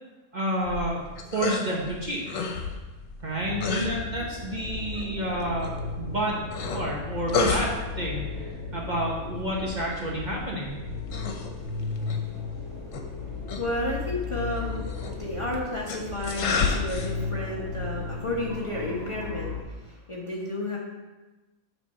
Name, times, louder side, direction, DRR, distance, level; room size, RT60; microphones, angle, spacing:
voice 1, 0.3-1.0 1.3-2.2 3.2-6.4 6.7-10.7, right 1 dB, 40° right, -3 dB, 1.0 m, -30 dB
sound 1, 0.6-19.3, left 4 dB, 85° left, 1.1 m, -34 dB
sound 2, 3.2-19.6, left 5 dB, 65° left, 1.3 m, -35 dB
voice 2, 3.5-4.0 11.6-12.1 12.6-20.8, left 1 dB, 25° left, -4 dB, 1.0 m, -33 dB
7.6 x 3.3 x 5.5 m, 1.2 s
omnidirectional pair, 1.3 m